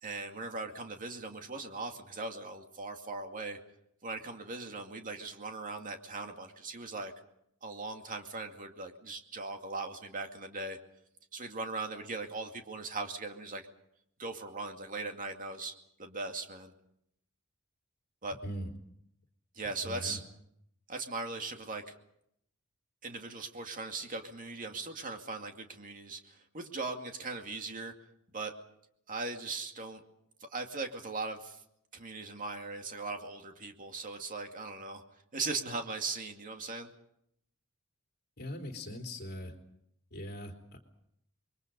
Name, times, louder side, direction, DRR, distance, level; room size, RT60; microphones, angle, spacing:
voice 1, 0.0-3.6 4.0-7.1 7.6-10.8 11.3-13.6 14.2-16.7 18.2-18.4 19.5-20.2 20.9-22.0 23.0-27.9 28.3-28.5 29.1-30.0 30.4-31.6 31.9-35.0 35.3-36.9, right 3 dB, 40° right, 4 dB, 2.3 m, -39 dB
voice 2, 19.8-20.2 38.4-39.5 40.1-40.8, equal, 50° left, 2 dB, 3.6 m, -40 dB
28.5 x 22.5 x 5.4 m, 0.75 s
head